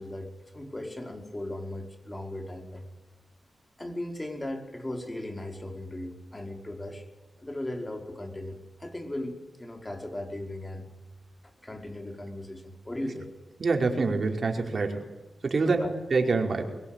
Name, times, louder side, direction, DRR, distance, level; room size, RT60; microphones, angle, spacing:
voice 1, 0.0-2.8 3.8-7.0 7.4-10.9 11.6-13.3 15.6-15.9, left 1 dB, 20° left, 4 dB, 5.1 m, -37 dB
voice 2, 13.6-15.1 15.4-16.7, right 3 dB, 55° right, 3 dB, 5.0 m, -26 dB
23.5 x 22.0 x 9.1 m, 1.1 s
cardioid pair, 80°, 0 cm